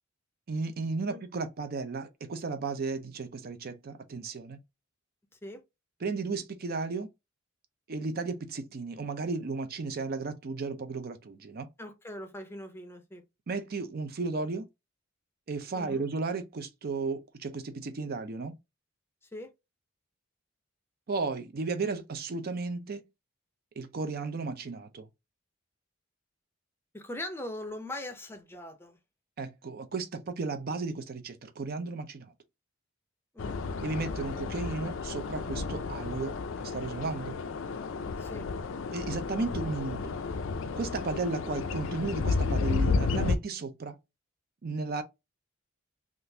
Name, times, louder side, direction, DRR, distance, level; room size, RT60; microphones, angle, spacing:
voice 1, 0.5-4.6 6.0-7.1 7.9-11.7 13.5-14.7 15.5-18.6 21.1-23.0 23.8-25.1 29.4-32.3 33.8-37.3 38.9-40.1 40.8-44.0 44.6-45.0, right 3 dB, 50° right, 0.5 m, -34 dB
voice 2, 11.8-13.2 15.7-16.0 19.3-19.5 26.9-29.0 33.3-33.6 38.2-38.5, left 1 dB, 10° left, 0.5 m, -41 dB
sound 1, 33.4-43.4, left 4 dB, 70° left, 0.4 m, -32 dB
3.6 x 2.4 x 2.7 m
head